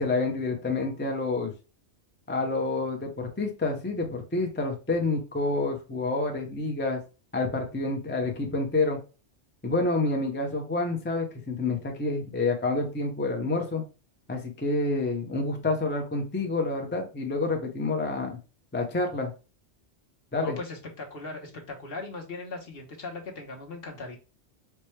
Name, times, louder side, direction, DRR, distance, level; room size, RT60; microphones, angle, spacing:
voice 1, 0.0-1.5 2.3-7.0 7.3-9.0 9.6-13.8 14.3-18.4 18.7-19.3 20.3-20.6, left 3 dB, 15° left, 2 dB, 0.4 m, -28 dB
voice 2, 20.4-24.2, left 3 dB, 55° left, 0 dB, 1.1 m, -39 dB
4.5 x 2.2 x 3.1 m, 0.33 s
omnidirectional pair, 1.2 m